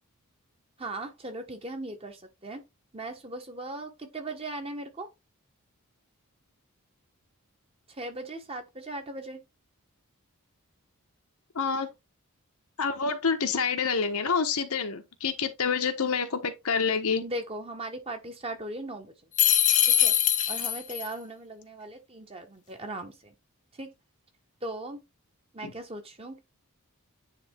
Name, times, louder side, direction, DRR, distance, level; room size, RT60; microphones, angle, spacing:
voice 1, 0.8-2.6 2.9-5.1 7.9-9.4 17.2-19.1 19.9-20.2 20.5-23.3 23.8-23.9 24.6-25.0 25.5-26.4, right 1 dB, 25° right, 1.4 m, -38 dB
voice 2, 11.5-11.9 12.8-17.2 25.6-25.7, left 5 dB, 80° left, 1.3 m, -27 dB
sound 1, 19.4-21.1, left 10 dB, 35° left, 0.9 m, -22 dB
9.7 x 3.5 x 3.6 m
head